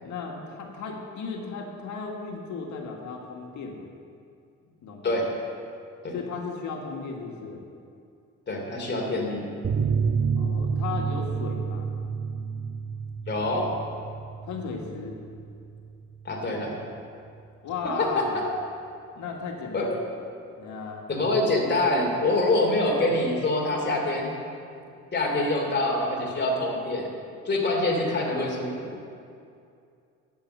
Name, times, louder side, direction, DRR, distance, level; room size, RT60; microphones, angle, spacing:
voice 1, 0.0-3.9 4.8-5.1 6.1-7.6 10.3-11.9 14.4-15.1 17.6-18.4 19.2-20.0 20.6-21.0, left 4 dB, 75° left, 1 dB, 1.8 m, -35 dB
voice 2, 8.5-9.5 13.3-13.7 16.2-16.8 18.0-18.4 19.7-19.9 21.1-24.3 25.1-27.1 27.4-29.0, left 2 dB, 35° left, 0 dB, 2.8 m, -25 dB
sound 1, 9.6-16.7 17.0-17.1 17.4-17.5, right 6 dB, 40° right, 0.8 m, -30 dB
10.5 x 8.5 x 7.8 m, 2.5 s
cardioid pair, 90°, 30 cm